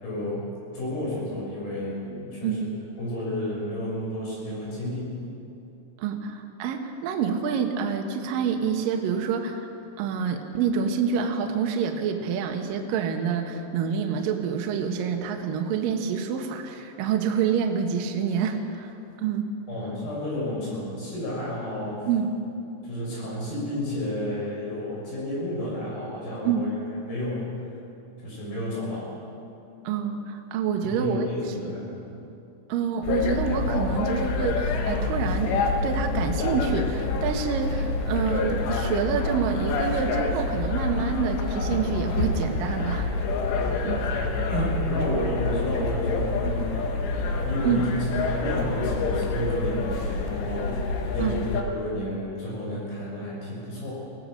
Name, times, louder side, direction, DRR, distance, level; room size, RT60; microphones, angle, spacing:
voice 1, 0.0-2.6 3.0-5.2 19.7-22.1 22.8-26.7 27.0-27.7 28.2-29.1 30.8-32.2 44.5-46.9 47.4-53.9, left 1 dB, 45° left, -5 dB, 8.1 m, -31 dB
voice 2, 6.0-9.7 10.0-18.9 19.2-19.4 22.1-22.3 26.4-26.7 29.8-31.3 31.6-31.7 32.7-43.1 43.8-44.1 47.6-47.8 51.2-51.4, right 6 dB, 80° right, 4 dB, 2.0 m, -27 dB
sound 1, 33.0-51.6, left 3 dB, 75° left, 3.9 m, -27 dB
23.5 x 17.0 x 6.4 m, 2.8 s
omnidirectional pair, 5.9 m